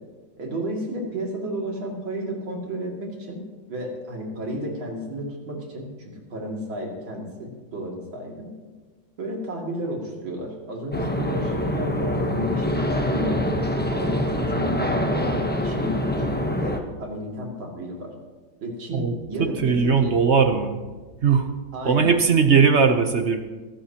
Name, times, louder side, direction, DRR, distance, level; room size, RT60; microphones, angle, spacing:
voice 1, 0.4-3.4 3.7-8.5 9.2-13.4 13.9-14.2 14.5-18.1 18.6-20.1 21.7-22.1, right 1 dB, 85° right, -1 dB, 3.3 m, -32 dB
sound 1, 10.9-16.8, left 1 dB, 10° left, 0.6 m, -25 dB
voice 2, 18.9-20.8 21.2-21.5 21.8-23.4, right 5 dB, 55° right, 6 dB, 0.8 m, -19 dB
23.5 x 12.5 x 2.9 m, 1.4 s
omnidirectional pair, 2.1 m